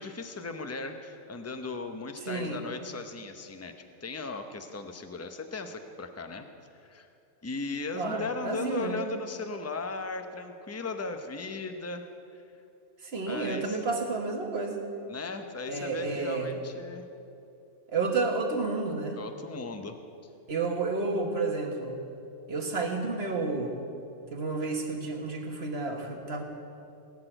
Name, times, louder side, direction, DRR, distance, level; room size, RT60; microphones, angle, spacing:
voice 1, 0.0-3.7 4.0-6.4 6.8-7.1 7.4-12.1 12.3-12.4 13.3-13.8 15.1-17.0 19.2-20.0, left 3 dB, 15° left, 7 dB, 0.6 m, -37 dB
voice 2, 2.2-2.6 7.9-8.9 13.0-14.8 15.7-16.5 17.9-19.2 20.5-22.0 22.5-23.7 24.3-26.4, right 3 dB, 50° right, 2 dB, 1.7 m, -31 dB
18.5 x 6.5 x 9.0 m, 2.6 s
omnidirectional pair, 1.4 m